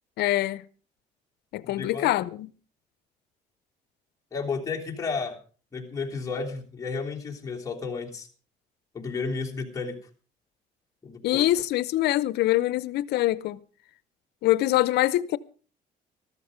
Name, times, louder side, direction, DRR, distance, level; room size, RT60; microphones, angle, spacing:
voice 1, 0.2-0.6 1.5-2.5 11.2-13.6 14.4-15.4, left 15 dB, 75° left, 0.7 m, -24 dB
voice 2, 1.6-2.1 4.3-5.4 5.7-8.3 8.9-10.0 11.0-11.4, left 4 dB, 20° left, 3.3 m, -32 dB
13.5 x 13.5 x 5.1 m
cardioid pair, 110°, 17 cm